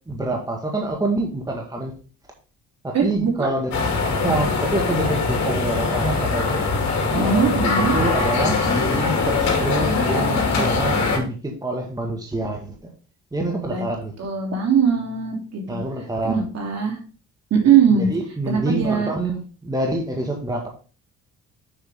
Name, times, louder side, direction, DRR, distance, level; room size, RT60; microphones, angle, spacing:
voice 1, 0.1-1.9 2.8-3.8 4.1-6.6 7.2-12.9 13.3-14.1 15.7-16.4 18.0-20.7, right 1 dB, 10° right, 1 dB, 1.7 m, -26 dB
voice 2, 2.9-3.5 7.1-7.9 13.6-13.8 14.2-15.8 16.2-17.0 17.5-18.1 18.5-19.1, right 7 dB, 60° right, 0 dB, 3.2 m, -20 dB
sound 1, 3.7-11.2, left 3 dB, 65° left, 2.9 m, -22 dB
7.2 x 6.0 x 3.6 m, 0.36 s
cardioid pair, 90°, 30 cm